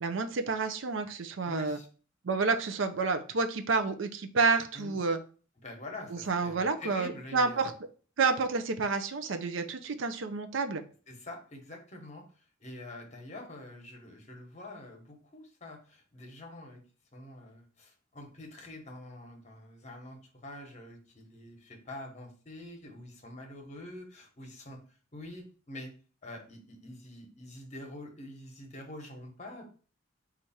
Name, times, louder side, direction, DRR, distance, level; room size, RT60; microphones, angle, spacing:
voice 1, 0.0-1.8 2.2-5.2 6.1-7.7 8.2-10.8, right 4 dB, 70° right, 8 dB, 0.5 m, -29 dB
voice 2, 1.5-1.9 4.7-5.0 5.6-7.7 11.1-16.8 17.1-24.8 25.1-25.9 26.2-29.7, left 1 dB, 35° left, 3 dB, 1.0 m, -46 dB
4.5 x 2.5 x 4.2 m, 0.39 s
head